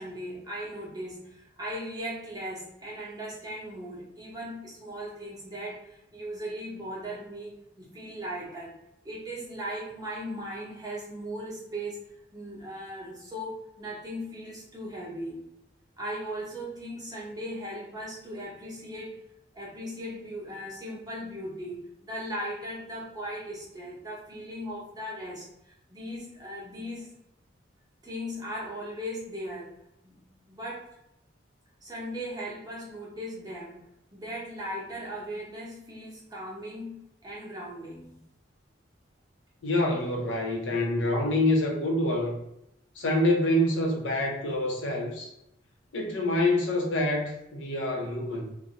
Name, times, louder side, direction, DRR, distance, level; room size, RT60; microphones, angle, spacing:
voice 1, 0.0-8.7 9.0-12.0 12.3-15.4 16.0-19.2 19.5-27.1 28.0-29.8 30.0-30.9 31.8-38.2, equal, 20° right, -5 dB, 0.7 m, -38 dB
voice 2, 39.6-42.4 43.0-45.3 45.9-48.5, left 1 dB, 75° left, 0 dB, 0.6 m, -26 dB
2.5 x 2.2 x 2.8 m, 0.82 s
head